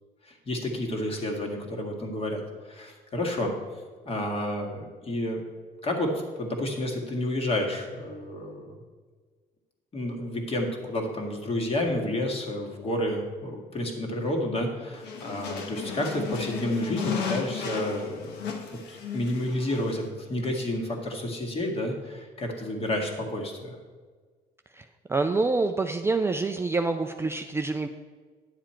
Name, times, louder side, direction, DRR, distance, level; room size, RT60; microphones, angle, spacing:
voice 1, 0.2-3.5 4.1-5.4 5.8-8.8 9.9-18.5 18.9-23.8, left 1 dB, 35° left, 2 dB, 2.0 m, -30 dB
sound 1, 14.9-20.1, left 6 dB, 80° left, 1.2 m, -34 dB
voice 2, 25.1-27.9, right 3 dB, 15° right, 6 dB, 0.4 m, -26 dB
10.0 x 7.4 x 4.4 m, 1.5 s
cardioid pair, 110°, 17 cm